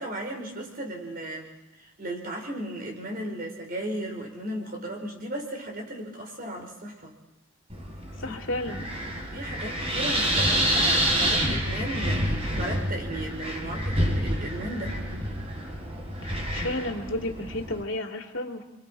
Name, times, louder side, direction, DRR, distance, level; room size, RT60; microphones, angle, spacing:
voice 1, 0.0-1.5 1.8-7.1 8.3-8.4 9.3-15.0, right 1 dB, 45° right, 1 dB, 4.9 m, -35 dB
Wind, 7.7-17.8, equal, 30° right, 3.7 m, -28 dB
voice 2, 8.2-8.9 16.2-18.6, left 1 dB, 75° left, 3 dB, 2.4 m, -32 dB
28.0 x 25.0 x 4.6 m, 0.99 s
head